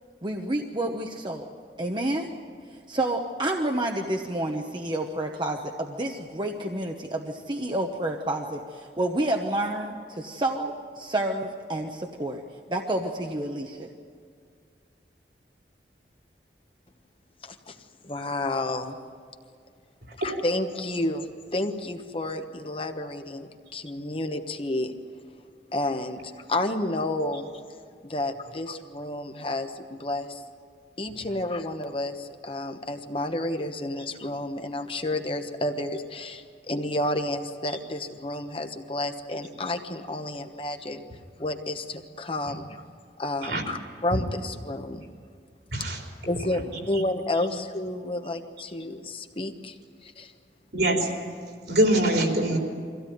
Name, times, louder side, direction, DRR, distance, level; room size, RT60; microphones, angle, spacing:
voice 1, 0.2-1.4 1.8-2.3 2.9-12.4 12.7-13.9, right 1 dB, 25° right, 2 dB, 1.0 m, -29 dB
voice 2, 17.4-17.8 18.0-19.0 20.2-24.9 25.7-27.5 28.0-30.4 31.0-41.0 41.4-42.8 43.2-45.0 46.3-46.6 46.9-50.3, left 1 dB, 30° left, 6 dB, 1.1 m, -31 dB
voice 3, 50.7-51.1 51.7-52.6, right 1 dB, 70° right, 1 dB, 3.7 m, -23 dB
23.5 x 16.5 x 9.3 m, 2.1 s
head